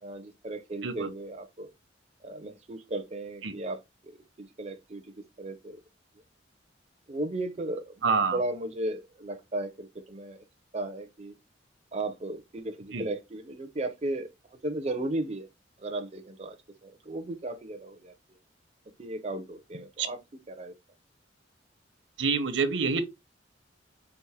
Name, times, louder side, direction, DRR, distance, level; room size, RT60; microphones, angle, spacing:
voice 1, 0.0-1.7 2.2-5.8 7.1-10.4 10.7-11.3 11.9-14.3 14.6-15.5 15.8-16.6 16.8-18.1 19.0-20.2 20.5-20.7, right 2 dB, 35° right, 0.5 m, -35 dB
voice 2, 8.0-8.4 12.9-13.0 20.0-20.1 22.2-23.0, right 5 dB, 80° right, 0.8 m, -26 dB
4.7 x 2.5 x 3.4 m
head